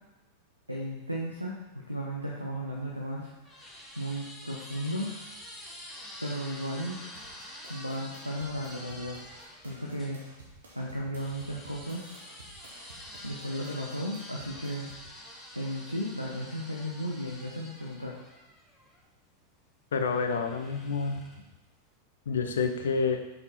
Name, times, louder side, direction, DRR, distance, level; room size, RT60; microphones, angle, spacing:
voice 1, 0.7-5.2 6.2-7.0 7.7-9.2 9.6-10.2 10.8-12.1 13.2-14.9 15.5-18.2, equal, 90° right, -3 dB, 0.7 m, -35 dB
sound 1, 2.8-10.2 11.1-19.1 19.9-21.5, left 1 dB, 10° left, 1.2 m, -47 dB
sound 2, 7.1-15.1, right 2 dB, 70° right, 1.3 m, -53 dB
voice 2, 19.9-21.2 22.3-23.2, left 5 dB, 65° left, 7 dB, 0.6 m, -28 dB
5.3 x 4.2 x 4.2 m, 1.1 s
figure-of-eight pair, 90°, 0 cm